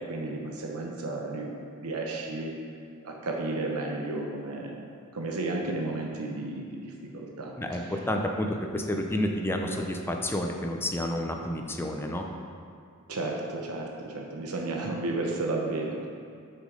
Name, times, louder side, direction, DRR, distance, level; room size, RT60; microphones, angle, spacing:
voice 1, 0.0-1.5 1.8-2.5 3.0-4.8 5.1-7.9 13.1-16.1, right 2 dB, 85° right, 0 dB, 0.9 m, -33 dB
voice 2, 7.6-12.2, left 1 dB, 10° left, 2 dB, 0.6 m, -30 dB
6.3 x 6.1 x 5.1 m, 2.4 s
head